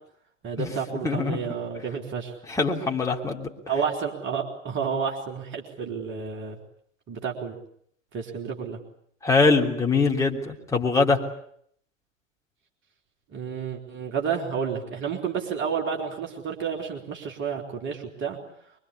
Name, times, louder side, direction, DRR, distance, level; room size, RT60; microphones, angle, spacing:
voice 1, 0.4-2.4 3.7-6.6 7.1-7.6 8.1-8.8 13.3-18.4, right 6 dB, 30° right, 2 dB, 3.8 m, -30 dB
voice 2, 1.0-1.4 2.5-3.5 9.2-11.2, left 3 dB, 10° left, -1 dB, 3.4 m, -23 dB
24.5 x 24.0 x 8.5 m, 0.66 s
figure-of-eight pair, 90°, 38 cm